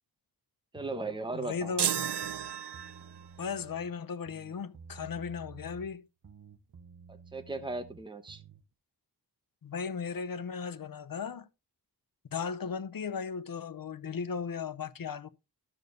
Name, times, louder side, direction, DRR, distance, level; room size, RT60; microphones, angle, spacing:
voice 1, 0.7-1.8 7.1-8.4, right 2 dB, 10° right, 1.0 m, -37 dB
sound 1, 0.7-1.8 2.2-3.9 4.3-6.0 6.2-8.6, right 5 dB, 55° right, 0.8 m, -52 dB
voice 2, 1.3-2.1 3.4-6.1 9.6-11.5 12.3-15.3, left 6 dB, 55° left, 0.7 m, -36 dB
sound 2, 1.8-3.3, right 9 dB, 85° right, 0.6 m, -32 dB
12.5 x 6.7 x 2.6 m
wide cardioid pair, 65°, 40 cm